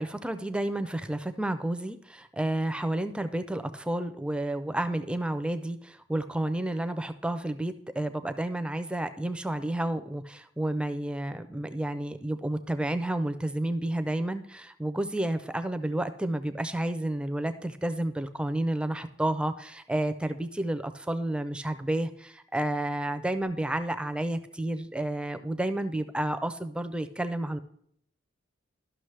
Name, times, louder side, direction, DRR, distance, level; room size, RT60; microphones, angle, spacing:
voice 1, 0.0-27.6, right 1 dB, 5° right, 10 dB, 0.4 m, -31 dB
12.5 x 6.0 x 3.2 m, 0.68 s
head